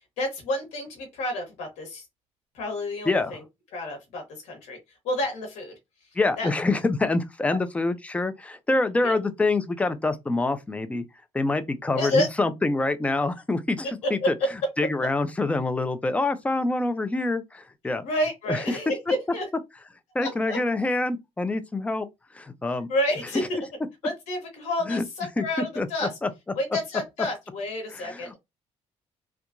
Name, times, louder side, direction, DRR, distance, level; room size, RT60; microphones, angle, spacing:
voice 1, 0.2-2.0 2.5-3.4 3.7-4.8 5.0-5.8 6.4-6.5 7.5-7.6 9.0-9.2 11.9-12.3 14.2-14.3 18.0-19.5 20.2-20.6 22.9-23.6 24.0-26.1 26.5-28.3, left 1 dB, 90° left, 0.9 m, -29 dB
voice 2, 6.2-11.0 11.3-14.4 14.8-18.0 18.5-18.8 20.1-22.1 22.3-22.9 23.3-23.5 24.9-25.0 25.4-25.5 25.8-25.9 26.2-26.3 27.9-28.3, left 2 dB, 10° left, 0.3 m, -26 dB
2.7 x 2.2 x 2.4 m
cardioid pair, 120°, 12 cm